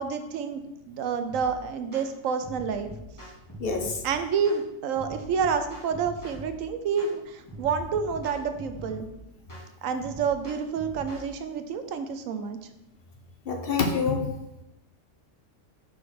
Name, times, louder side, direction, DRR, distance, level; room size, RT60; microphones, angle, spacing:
voice 1, 0.0-2.9 4.0-9.1 9.8-12.6, right 6 dB, 80° right, 8 dB, 1.1 m, -29 dB
sound 1, 1.3-1.5 1.9-2.1 2.4-4.0 4.4-4.6 5.0-6.6 7.0-7.2 7.5-9.1 9.5-9.7 10.0-11.3, equal, 15° left, 2.2 m, -42 dB
voice 2, 3.6-4.0 13.5-14.2, left 4 dB, 50° left, 2 dB, 1.0 m, -26 dB
5.1 x 4.3 x 5.8 m, 0.89 s
omnidirectional pair, 1.4 m